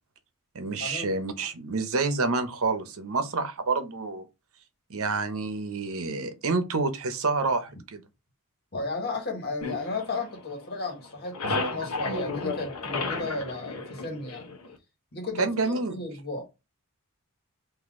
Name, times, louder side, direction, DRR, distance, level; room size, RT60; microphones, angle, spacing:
voice 1, 0.5-4.3 4.9-8.0 15.4-16.0, right 3 dB, 65° right, 0.9 m, -28 dB
voice 2, 8.7-14.6 15.1-16.4, left 3 dB, 50° left, 1.6 m, -34 dB
sound 1, 9.6-10.8 11.0-14.7, left 3 dB, 90° left, 1.0 m, -33 dB
4.2 x 2.7 x 3.6 m
head